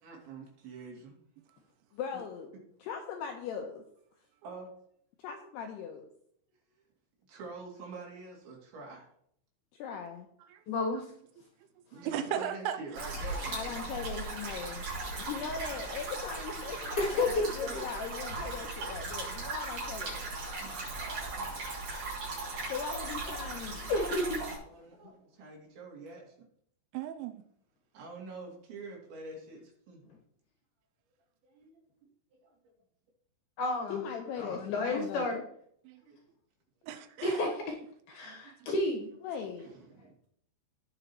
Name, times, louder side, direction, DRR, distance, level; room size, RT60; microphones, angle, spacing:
voice 1, 0.0-1.2 4.4-4.7 7.3-9.1 10.8-11.0 11.9-13.8 20.6-20.8 21.1-21.8 24.6-26.3 27.9-30.0 31.5-31.8 32.3-32.5 36.0-36.2 39.6-40.1, right 3 dB, 65° right, 4.9 m, -46 dB
voice 2, 1.9-2.5 2.8-3.8 5.2-6.0 9.7-10.3 13.5-14.9 15.2-20.2 22.7-23.9 33.9-35.4 39.2-39.7, left 7 dB, 85° left, 2.4 m, -39 dB
voice 3, 10.7-11.1 17.0-17.8 23.9-24.4 25.0-25.1 33.6-35.4 37.2-37.8 38.1-39.1, left 2 dB, 65° left, 2.5 m, -31 dB
voice 4, 12.0-12.8 26.9-27.4 35.9-36.0 36.8-37.4 38.3-38.5, right 10 dB, 85° right, 2.9 m, -36 dB
sound 1, 12.9-24.6, right 3 dB, 45° right, 5.9 m, -38 dB
18.0 x 6.0 x 3.1 m
omnidirectional pair, 5.6 m